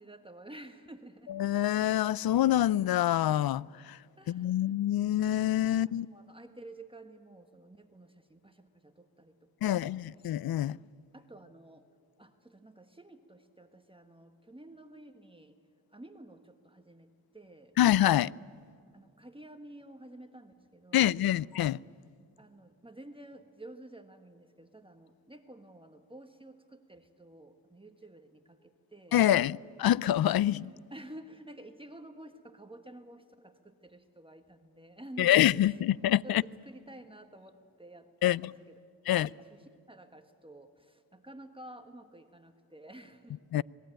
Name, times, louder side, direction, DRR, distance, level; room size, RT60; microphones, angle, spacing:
voice 1, 0.0-1.4 4.2-4.7 5.7-10.0 11.1-11.8 12.2-15.6 15.9-17.7 18.9-21.2 22.4-29.2 30.4-35.6 36.2-38.8 39.1-43.4, right 1 dB, 15° right, 1.5 m, -51 dB
voice 2, 1.3-4.0 4.3-6.1 9.6-10.8 17.8-18.3 20.9-21.8 29.1-30.7 35.2-36.4 38.2-38.4 39.1-39.3 43.5-43.6, left 12 dB, 65° left, 0.5 m, -26 dB
26.0 x 20.5 x 9.0 m
cardioid pair, 60°, 39 cm